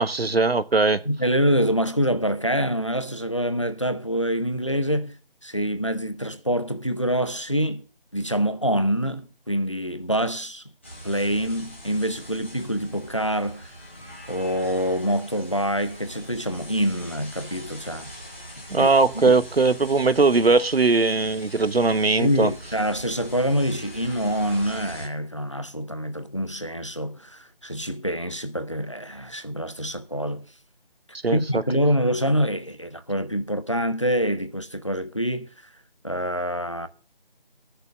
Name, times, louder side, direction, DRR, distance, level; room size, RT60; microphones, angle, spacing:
voice 1, 0.0-1.0 18.7-22.5 31.2-31.6, right 3 dB, 90° right, 1.1 m, -20 dB
voice 2, 1.1-5.2 5.4-7.8 8.1-10.6 11.0-13.7 14.3-18.1 18.7-19.4 22.2-30.5 31.3-35.5 36.0-36.9, equal, 30° left, 0.6 m, -26 dB
sound 1, 10.8-25.1, equal, 10° left, 1.3 m, -42 dB
15.0 x 6.7 x 6.6 m
figure-of-eight pair, 175°, 30 cm